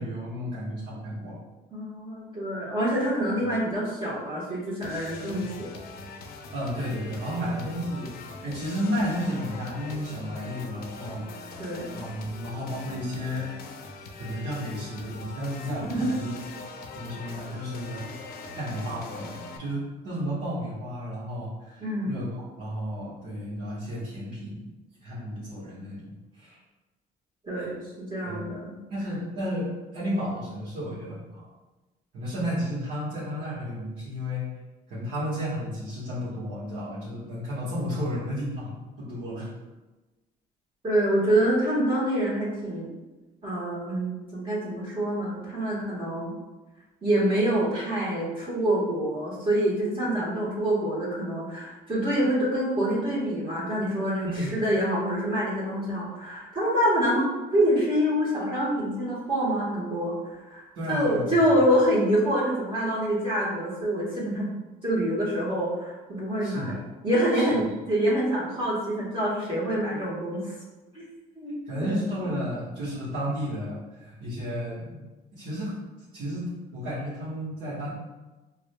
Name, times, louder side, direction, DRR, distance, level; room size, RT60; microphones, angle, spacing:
voice 1, 0.0-1.4 5.4-5.5 6.5-8.1 8.4-11.5 11.9-13.5 14.2-16.3 16.9-18.3 18.5-24.6 25.0-26.6 27.5-27.7 28.3-28.5 28.9-31.4 32.1-34.4 34.9-38.7 39.0-39.5 54.2-54.5 60.7-61.3 66.4-66.8 67.3-67.5 71.7-75.0 75.4-75.7 76.1-77.9, equal, 65° right, -11 dB, 1.4 m, -32 dB
voice 2, 1.7-5.8 11.6-12.0 15.9-16.1 21.8-22.2 27.4-28.8 40.8-42.9 43.4-46.3 47.0-64.5 64.8-66.7 67.0-70.5 70.9-71.0 71.3-72.0, right 1 dB, 30° right, -7 dB, 1.4 m, -26 dB
sound 1, 4.8-19.6, left 3 dB, 65° left, 0.5 m, -42 dB
4.8 x 2.6 x 2.2 m, 1.1 s
cardioid pair, 110°, 17 cm